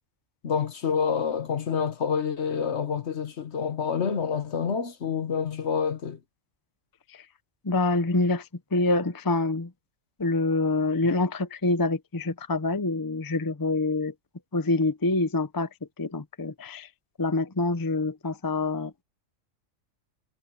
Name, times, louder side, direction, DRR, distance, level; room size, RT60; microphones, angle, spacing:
voice 1, 0.4-6.2, left 6 dB, 60° left, 1.4 m, -28 dB
voice 2, 7.6-9.7 10.2-14.1 14.5-15.7 16.0-16.9 17.2-19.0, left 2 dB, 20° left, 0.6 m, -26 dB
omnidirectional pair, 1.3 m